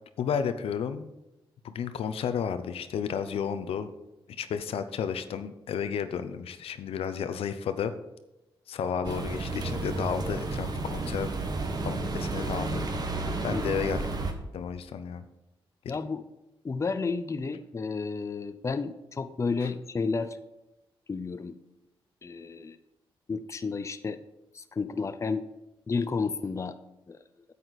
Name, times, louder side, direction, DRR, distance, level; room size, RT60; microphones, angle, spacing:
voice 1, 0.2-1.1 1.6-3.9 4.4-7.9 8.7-11.3 11.8-12.8 13.4-14.1 14.5-15.3, left 7 dB, 85° left, 11 dB, 0.7 m, -32 dB
sound 1, 9.0-14.3, right 3 dB, 45° right, 1.3 m, -32 dB
voice 2, 15.9-16.2 16.6-20.4 21.1-21.6 22.2-22.8 23.3-24.2 24.5-25.5 25.9-26.8 27.1-27.2, left 4 dB, 30° left, 11 dB, 0.6 m, -31 dB
9.0 x 8.4 x 4.1 m, 0.94 s
cardioid pair, 90°, 10 cm